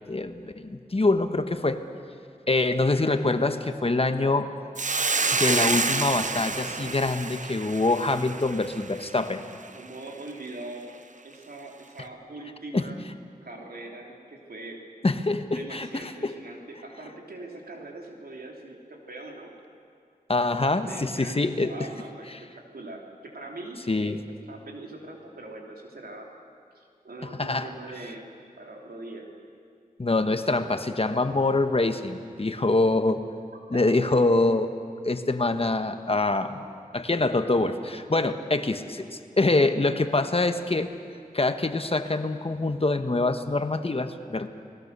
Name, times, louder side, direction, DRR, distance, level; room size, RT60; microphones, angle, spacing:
voice 1, 0.1-1.8 2.5-4.5 5.4-9.4 12.7-12.8 15.0-16.3 20.3-21.7 23.9-24.2 27.4-27.7 30.0-33.2 33.7-34.7 35.0-36.5 36.9-39.0 39.4-40.9 41.3-44.5, left 2 dB, 40° left, 9 dB, 1.3 m, -25 dB
Hiss, 4.8-9.3, right 4 dB, 55° right, 0.9 m, -28 dB
voice 2, 9.7-10.9 11.2-13.0 13.4-14.8 15.4-19.5 20.9-24.2 24.5-26.3 26.7-28.2 28.6-29.3 33.7-33.8 38.1-38.2, right 2 dB, 85° right, 1 dB, 3.3 m, -42 dB
29.5 x 19.5 x 6.8 m, 2.3 s
wide cardioid pair, 60°, 15 cm